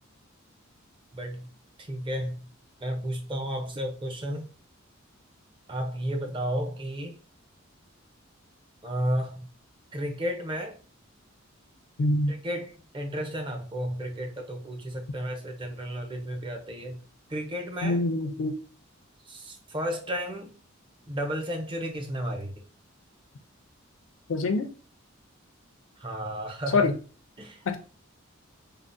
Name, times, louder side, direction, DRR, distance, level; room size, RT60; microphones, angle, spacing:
voice 1, 1.1-1.5 1.8-2.4 2.8-4.5 5.7-7.1 8.8-9.5 9.9-10.8 12.3-17.0 17.3-18.0 19.3-20.5 21.1-22.6 26.0-26.9 27.4-27.8, equal, 25° right, 0.5 m, -33 dB
voice 2, 12.0-12.3 17.8-18.5 24.3-24.7 26.7-26.9 27.7-27.8, left 2 dB, 65° left, 0.4 m, -24 dB
3.5 x 2.0 x 2.5 m
head